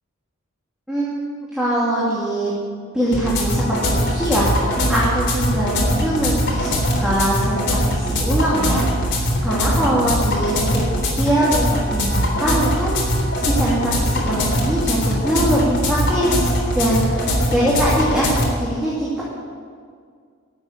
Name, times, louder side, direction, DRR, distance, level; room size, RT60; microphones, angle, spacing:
voice 1, 0.9-1.2 1.5-2.5 2.9-8.9 9.4-12.9 13.4-18.3 18.6-19.2, right 1 dB, 5° right, -8 dB, 2.5 m, -22 dB
sound 1, 3.1-18.5, equal, 60° left, 3.5 m, -21 dB
12.5 x 7.9 x 9.7 m, 2.1 s
head